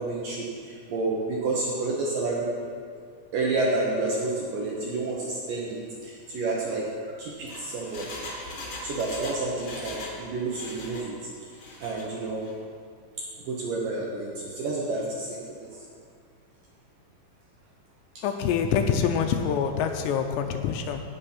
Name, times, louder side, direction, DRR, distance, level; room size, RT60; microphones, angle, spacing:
voice 1, 0.0-2.5 3.3-8.1 8.8-11.1 11.8-12.5 13.4-15.8 18.2-18.3, right 3 dB, 70° right, -3 dB, 2.2 m, -30 dB
Engine, 7.2-10.2 10.5-11.1 11.5-12.1 12.4-12.5, left 2 dB, 55° left, 1.9 m, -40 dB
voice 2, 18.2-21.0, left 7 dB, 80° left, 6 dB, 2.7 m, -25 dB
16.5 x 5.6 x 5.8 m, 2.1 s
omnidirectional pair, 5.2 m